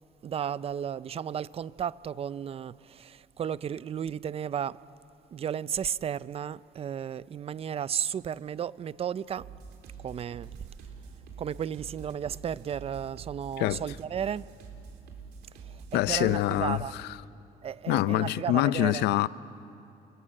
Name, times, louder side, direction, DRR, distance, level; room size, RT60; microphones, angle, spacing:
voice 1, 0.2-4.8 5.3-9.5 10.0-10.5 11.4-14.5 15.6-15.8 16.1-16.9 17.6-19.0, right 8 dB, 35° right, 0.5 m, -34 dB
sound 1, 9.4-17.0, right 5 dB, 75° right, 3.9 m, -46 dB
voice 2, 15.9-17.2 17.9-19.3, left 15 dB, 80° left, 0.6 m, -25 dB
29.0 x 23.0 x 7.6 m
cardioid pair, 110°, 17 cm